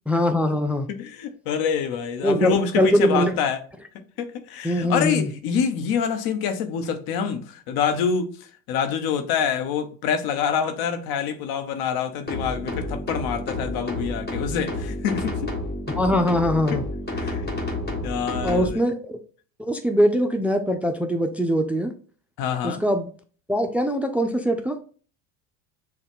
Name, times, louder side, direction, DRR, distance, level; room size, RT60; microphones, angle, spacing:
voice 1, 0.1-0.9 2.2-3.3 4.6-5.3 16.0-16.8 18.4-19.1 19.6-21.9 22.6-23.1 23.5-24.8, equal, 5° right, 0.4 m, -22 dB
voice 2, 0.9-3.6 4.2-8.3 8.7-15.5 16.7-16.8 17.1-17.5 18.0-18.8 22.4-22.8, left 7 dB, 65° left, 1.0 m, -26 dB
sound 1, 12.3-18.7, left 2 dB, 25° left, 1.4 m, -30 dB
6.4 x 2.3 x 3.5 m
supercardioid pair, 85°, 39 cm